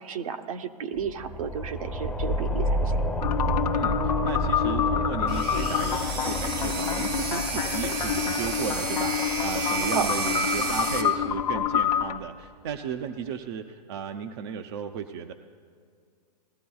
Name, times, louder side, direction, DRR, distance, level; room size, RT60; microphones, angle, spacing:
voice 1, 0.0-3.0 9.9-10.5, right 7 dB, 60° right, 8 dB, 0.8 m, -33 dB
sound 1, 0.9-12.2, equal, 5° left, 0.7 m, -31 dB
sound 2, 3.2-12.2, left 9 dB, 75° left, 0.8 m, -28 dB
voice 2, 3.7-15.3, right 7 dB, 40° right, 6 dB, 0.5 m, -35 dB
sound 3, 5.3-11.0, right 3 dB, 90° right, 2.6 m, -31 dB
19.0 x 13.0 x 2.3 m, 2.1 s
hypercardioid pair, 140°, 21 cm